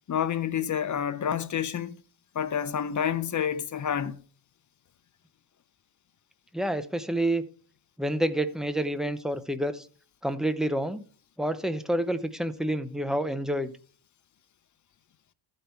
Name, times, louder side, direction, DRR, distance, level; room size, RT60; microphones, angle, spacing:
voice 1, 0.1-2.0 2.3-4.2, left 8 dB, 35° left, 0.7 m, -29 dB
voice 2, 6.5-7.4 8.0-9.9 10.2-11.0 11.4-13.7, right 1 dB, ahead, 0.6 m, -28 dB
14.0 x 5.4 x 4.3 m
cardioid pair, 125°, 49 cm